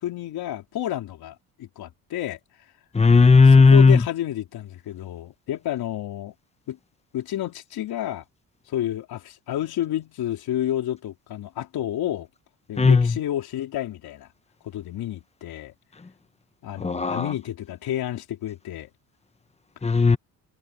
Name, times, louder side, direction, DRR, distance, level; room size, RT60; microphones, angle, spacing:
voice 1, 0.0-2.4 3.5-6.3 6.7-6.8 7.1-8.2 8.7-12.3 12.7-14.3 14.6-15.7 16.6-18.9, left 12 dB, 75° left, 4.4 m, -30 dB
voice 2, 2.9-4.0 12.8-13.1 16.8-17.3 19.8-20.2, left 4 dB, 15° left, 1.2 m, -15 dB
cardioid pair, 120°, 37 cm